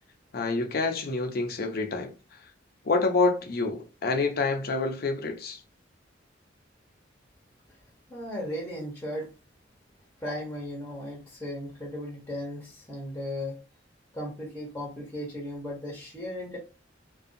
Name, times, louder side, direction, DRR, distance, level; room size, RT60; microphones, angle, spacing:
voice 1, 0.3-2.4 2.8-5.6, left 3 dB, 55° left, 0.5 m, -27 dB
voice 2, 8.1-9.3 10.2-13.6 14.1-16.6, left 1 dB, 10° left, 0.8 m, -36 dB
2.5 x 2.3 x 2.5 m
head